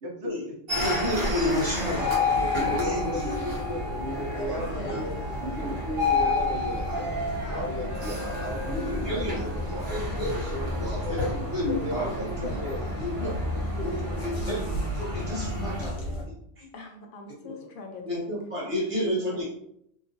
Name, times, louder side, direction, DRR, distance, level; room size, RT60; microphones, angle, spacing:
voice 1, 0.0-0.5 1.2-7.2 7.5-10.1 10.5-11.2 11.7-12.9 13.5-14.1, equal, 85° right, 1 dB, 1.0 m, -36 dB
voice 2, 0.7-2.0 2.4-3.4 4.7-4.8 8.7-9.4 9.9-10.5 10.8-12.5 13.0-13.4 13.8-14.6 15.0-16.0 16.2-16.7 17.4-17.5 18.0-19.5, left 1 dB, 30° right, -6 dB, 1.1 m, -31 dB
sound 1, 0.7-15.9, left 2 dB, 60° right, 1.1 m, -31 dB
sound 2, 0.8-16.2, left 1 dB, 75° left, 1.1 m, -34 dB
voice 3, 16.7-18.3 18.6-19.4, left 4 dB, 60° left, 3 dB, 0.7 m, -43 dB
2.9 x 2.3 x 2.6 m, 0.73 s
omnidirectional pair, 1.1 m